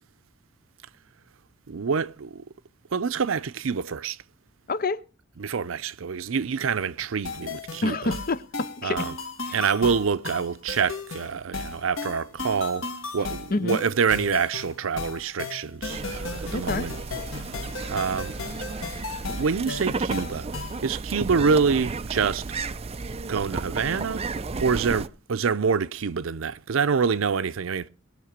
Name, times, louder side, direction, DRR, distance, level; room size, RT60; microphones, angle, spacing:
voice 1, 1.7-2.4 2.9-4.2 5.4-8.1 8.8-9.1 9.5-12.9 13.1-16.9 17.9-18.4 19.3-20.5 20.8-22.5 23.3-24.3 24.6-27.9, right 5 dB, 85° right, 0.6 m, -26 dB
voice 2, 4.7-5.0 7.8-9.1 9.4-9.6 13.5-13.8 16.4-16.9, left 3 dB, 45° left, 0.7 m, -28 dB
sound 1, 7.2-20.9, left 3 dB, 90° left, 1.7 m, -35 dB
sound 2, 15.9-25.1, right 3 dB, 30° right, 0.5 m, -33 dB
20.0 x 6.6 x 5.0 m
head